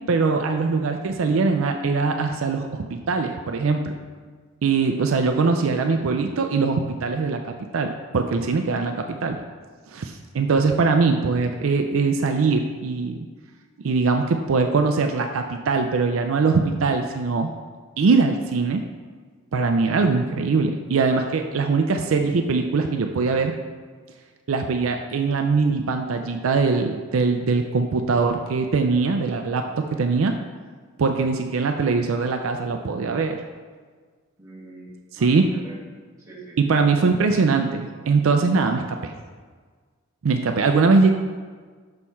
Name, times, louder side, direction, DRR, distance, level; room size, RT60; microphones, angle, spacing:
voice 1, 0.1-3.9 4.6-9.4 9.9-13.3 13.8-17.5 18.0-18.8 19.5-23.5 24.5-30.3 31.0-33.4 35.1-35.5 36.6-39.1 40.2-41.1, right 4 dB, 70° right, 5 dB, 0.4 m, -22 dB
voice 2, 34.4-35.8 36.2-36.6, right 2 dB, 15° right, -6 dB, 1.7 m, -44 dB
6.4 x 4.3 x 5.6 m, 1.5 s
head